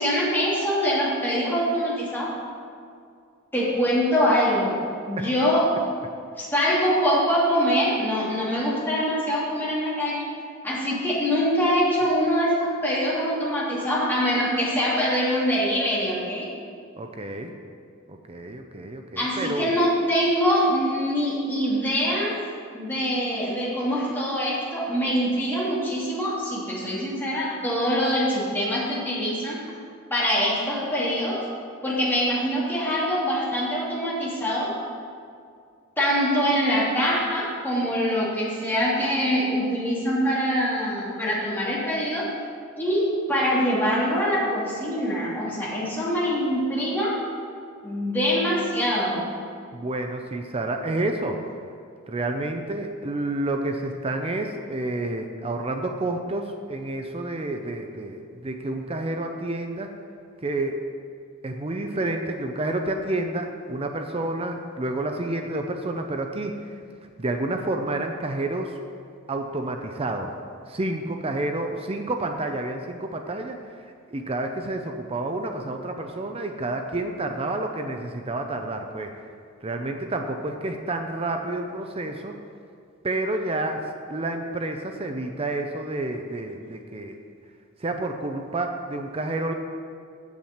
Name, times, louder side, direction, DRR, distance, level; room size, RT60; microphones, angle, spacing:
voice 1, 0.0-2.3 3.5-4.8 5.1-5.9 6.4-10.2 10.6-16.5 19.2-22.4 22.7-29.6 30.1-31.4 31.8-34.7 36.0-42.3 42.8-47.2 47.8-49.3, equal, 10° left, -8 dB, 2.9 m, -24 dB
voice 2, 17.0-17.5 18.1-19.7 49.7-51.4 52.1-59.9 60.4-60.8 61.4-66.7 67.2-68.8 69.3-70.3 70.7-73.6 74.1-79.1 79.6-82.4 83.0-83.8 84.1-87.2 87.8-89.5, right 2 dB, 30° right, 4 dB, 0.6 m, -29 dB
7.5 x 7.2 x 7.9 m, 2.3 s
head